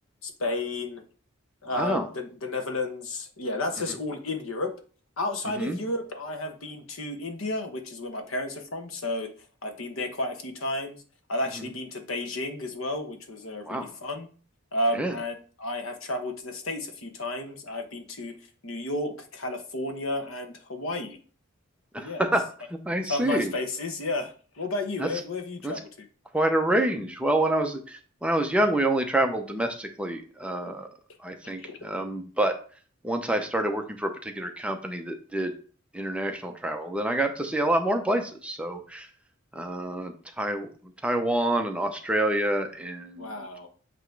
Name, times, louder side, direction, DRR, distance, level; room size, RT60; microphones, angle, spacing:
voice 1, 0.2-1.0 1.6-4.7 5.2-9.3 9.6-11.0 11.3-14.3 14.7-18.4 18.6-21.2 22.0-22.3 23.0-25.9 31.4-31.8 43.2-43.7, left 2 dB, 70° left, 5 dB, 1.1 m, -32 dB
voice 2, 1.7-2.1 5.6-5.8 13.6-13.8 14.9-15.1 21.9-22.4 22.9-23.5 25.0-25.1 25.6-25.7 26.3-30.9 31.2-32.5 33.0-35.5 35.9-39.1 39.5-40.7 41.0-43.4, right 1 dB, 5° right, 4 dB, 0.6 m, -27 dB
8.0 x 3.0 x 4.6 m, 0.41 s
head